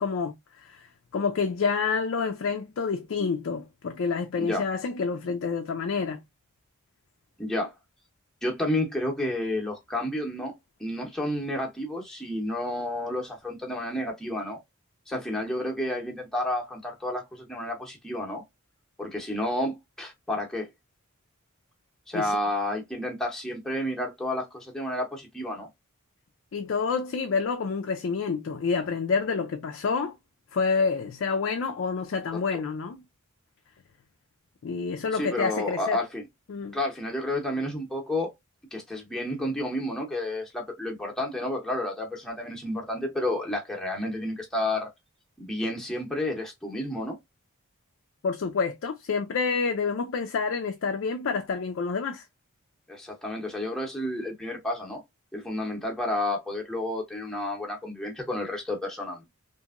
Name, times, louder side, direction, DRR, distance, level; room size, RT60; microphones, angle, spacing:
voice 1, 0.0-6.2 22.1-22.3 26.5-30.2 30.5-33.0 34.6-36.0 36.5-36.8 48.2-52.2, left 5 dB, 60° left, 0.4 m, -28 dB
voice 2, 7.4-7.7 8.4-10.5 10.8-14.6 15.1-18.4 19.0-20.7 22.1-25.7 35.1-36.2 36.7-38.3 38.7-44.9 45.4-47.2 52.9-55.0 55.3-59.2, left 1 dB, 5° left, 0.7 m, -31 dB
2.8 x 2.5 x 2.4 m
head